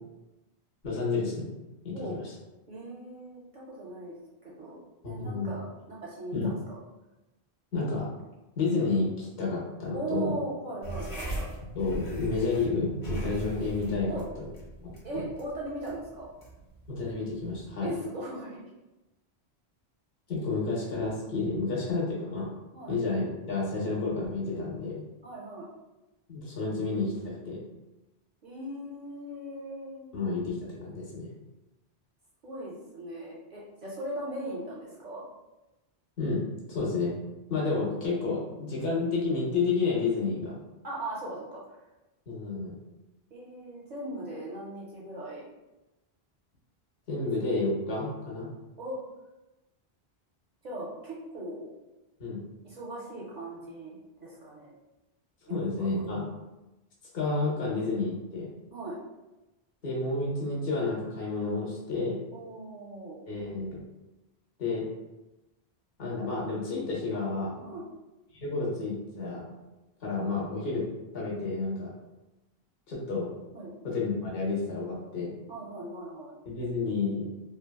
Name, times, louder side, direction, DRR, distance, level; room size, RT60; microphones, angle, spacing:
voice 1, 0.8-1.5 1.8-2.2 5.0-5.5 6.3-6.5 7.7-8.1 8.6-10.3 11.7-14.1 14.4-14.5 14.8-15.2 16.9-17.9 20.3-22.5 22.9-25.0 26.3-27.6 30.1-31.3 36.2-37.2 37.5-40.6 42.3-42.7 47.1-48.5 52.2-52.4 55.4-56.3 57.1-58.5 59.8-62.2 63.3-63.8 64.6-64.9 66.0-67.5 68.3-69.5 70.0-70.9 71.1-71.9 72.9-73.3 73.8-75.3 76.5-77.3, left 3 dB, 65° left, -4 dB, 1.0 m, -30 dB
voice 2, 2.7-4.8 5.1-6.6 9.9-11.5 14.1-14.2 15.0-16.3 17.8-18.6 20.5-20.7 22.7-22.9 25.2-25.7 28.4-30.2 32.4-35.2 40.8-41.8 43.3-45.4 48.8-49.0 50.6-51.7 52.6-54.7 55.5-55.6 58.7-59.0 62.3-63.2 67.6-67.8 73.5-73.7 75.5-76.3, right 1 dB, 50° right, -5 dB, 0.6 m, -39 dB
sound 1, 10.8-17.7, right 2 dB, 35° left, 0.7 m, -40 dB
2.8 x 2.3 x 2.2 m, 1.0 s
omnidirectional pair, 1.1 m